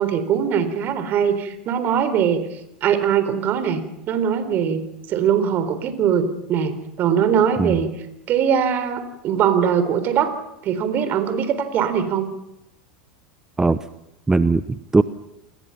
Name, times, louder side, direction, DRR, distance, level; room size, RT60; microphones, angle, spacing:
voice 1, 0.0-2.4 2.8-4.8 5.1-7.9 8.3-10.3 10.6-12.3, right 8 dB, 45° right, 11 dB, 4.1 m, -21 dB
voice 2, 14.3-15.0, right 3 dB, 10° right, 13 dB, 0.9 m, -19 dB
29.0 x 20.5 x 5.8 m, 0.84 s
hypercardioid pair, 85°, 5 cm